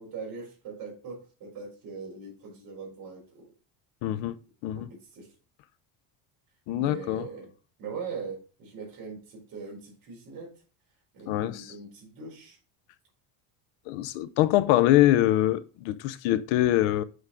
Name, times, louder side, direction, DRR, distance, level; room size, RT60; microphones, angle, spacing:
voice 1, 0.0-3.5 4.7-4.8 5.1-5.3 6.7-7.5 7.8-10.5 11.1-12.6, right 5 dB, 50° right, 4.4 m, -41 dB
voice 2, 4.0-4.9 6.7-7.3 11.3-11.7 13.9-17.0, left 14 dB, 80° left, 0.7 m, -24 dB
8.1 x 4.7 x 3.7 m
cardioid pair, 170°, 44 cm